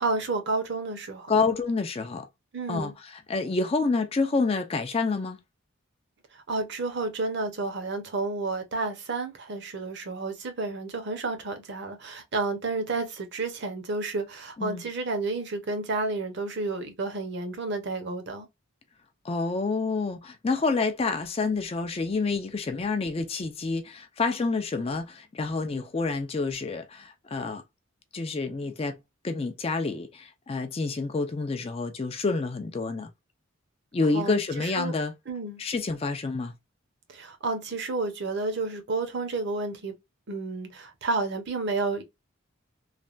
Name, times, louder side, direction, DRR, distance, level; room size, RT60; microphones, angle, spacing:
voice 1, 0.0-1.3 2.5-2.9 6.5-18.5 34.1-34.9 35.3-35.6 37.1-39.9 40.3-42.0, right 3 dB, 55° right, 0.7 m, -31 dB
voice 2, 1.3-2.3 2.7-5.4 14.6-14.9 19.2-27.6 28.1-29.0 29.2-33.1 33.9-35.1 35.6-36.5, left 3 dB, 25° left, 0.4 m, -28 dB
3.2 x 2.2 x 2.4 m
head